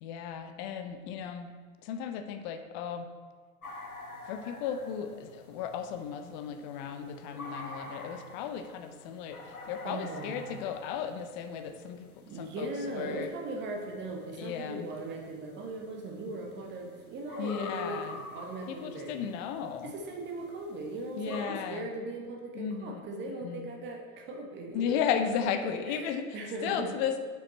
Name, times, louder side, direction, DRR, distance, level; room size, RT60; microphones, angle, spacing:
voice 1, 0.0-1.5 1.8-3.1 4.3-9.4 9.7-13.3 14.4-14.9 17.4-18.2 18.7-19.9 21.2-21.9 22.5-23.0 23.4-23.7 24.7-26.3 26.6-27.2, left 8 dB, 35° left, 8 dB, 0.5 m, -35 dB
sound 1, 3.6-21.4, left 2 dB, 80° left, 1.2 m, -48 dB
voice 2, 9.8-10.4 12.2-19.2 19.8-25.2 25.6-26.9, right 2 dB, 25° right, 1 dB, 1.1 m, -39 dB
6.9 x 5.3 x 4.3 m, 1.6 s
figure-of-eight pair, 90°, 43 cm